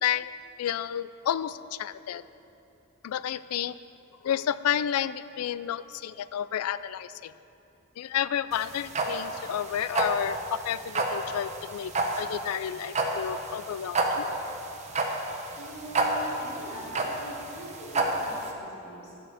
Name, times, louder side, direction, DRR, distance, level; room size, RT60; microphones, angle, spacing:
voice 1, 0.0-2.2 3.0-3.8 4.2-7.3 8.0-14.3, left 9 dB, 85° left, 16 dB, 0.3 m, -31 dB
sound 1, 8.5-18.5, right 2 dB, 30° right, 0.9 m, -29 dB
voice 2, 15.6-19.1, right 1 dB, 50° left, -9 dB, 2.8 m, -42 dB
10.5 x 6.3 x 6.7 m, 2.9 s
head